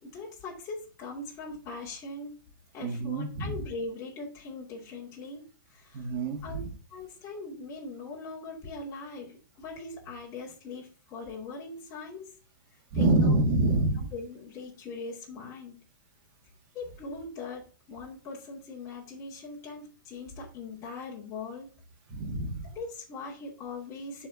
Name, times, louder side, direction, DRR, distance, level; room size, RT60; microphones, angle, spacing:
voice 1, 0.0-2.4 2.7-6.1 6.4-6.6 6.9-12.4 12.9-13.4 14.1-15.8 16.7-21.7 22.6-24.3, left 3 dB, 25° left, -5 dB, 2.5 m, -41 dB
voice 2, 2.8-3.6 5.9-6.7 12.9-14.0 22.1-22.7, right 2 dB, 40° right, 2 dB, 1.9 m, -26 dB
11.0 x 4.5 x 2.7 m, 0.37 s
hypercardioid pair, 130°, 11 cm